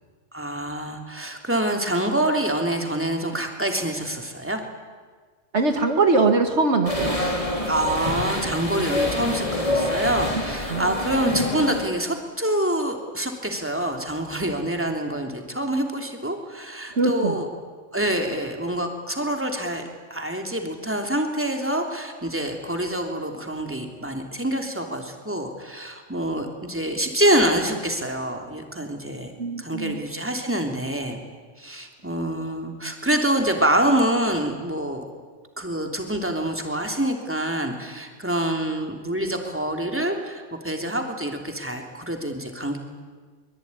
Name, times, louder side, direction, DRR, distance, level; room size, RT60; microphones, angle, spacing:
voice 1, 0.3-4.6 7.7-17.5 17.9-19.8 20.1-29.3 29.6-31.2 31.6-35.0 35.6-42.8, right 1 dB, 10° right, 3 dB, 3.2 m, -26 dB
voice 2, 5.5-7.2 10.7-10.9 16.9-17.4 29.4-30.0, right 3 dB, 70° right, 6 dB, 2.1 m, -21 dB
sound 1, 6.8-11.9, left 1 dB, 30° left, 3.5 m, -26 dB
24.0 x 22.5 x 9.8 m, 1.5 s
omnidirectional pair, 1.2 m